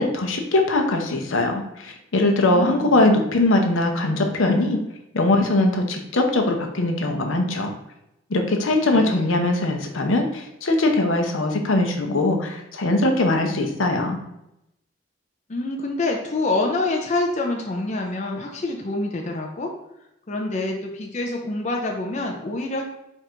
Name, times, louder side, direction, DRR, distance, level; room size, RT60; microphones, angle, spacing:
voice 1, 0.0-4.8 5.1-7.7 8.3-14.2, left 2 dB, 75° left, 4 dB, 0.7 m, -21 dB
voice 2, 2.4-3.1 8.9-9.4 15.5-19.7 20.3-22.8, left 2 dB, 35° left, 0 dB, 0.5 m, -26 dB
4.6 x 2.6 x 4.4 m, 0.85 s
head